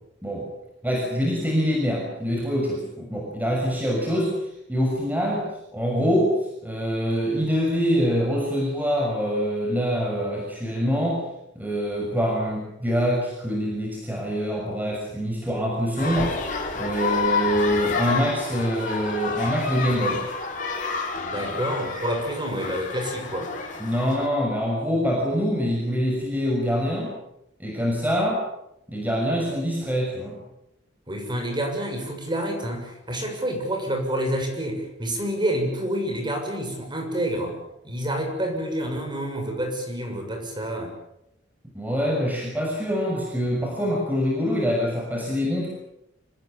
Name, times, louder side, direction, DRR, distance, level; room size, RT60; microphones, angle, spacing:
voice 1, 0.8-5.5 5.7-11.2 11.5-16.4 16.7-20.2 23.8-27.1 27.6-28.4 28.9-30.4 41.7-45.7, equal, 10° right, -2 dB, 6.4 m, -25 dB
sound 1, 16.0-24.3, left 4 dB, 45° left, 5.2 m, -29 dB
voice 2, 21.1-23.5 31.1-37.6 37.8-40.9, right 1 dB, 25° right, 2 dB, 6.7 m, -28 dB
27.0 x 20.0 x 9.0 m, 0.83 s
head